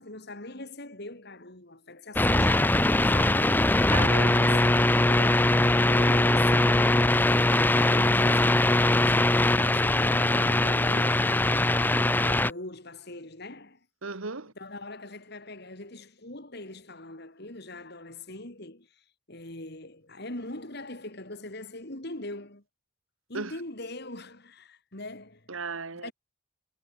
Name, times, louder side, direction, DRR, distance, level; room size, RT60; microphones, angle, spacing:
voice 1, 0.0-3.7 4.4-13.9 14.4-22.6 23.3-25.5 25.9-26.1, left 2 dB, 50° left, 3.6 m, -42 dB
sound 1, 2.2-12.5, left 1 dB, 10° left, 0.5 m, -22 dB
voice 2, 3.9-4.6 14.0-14.5 23.3-23.5 25.5-26.1, right 4 dB, 80° right, 1.6 m, -35 dB
head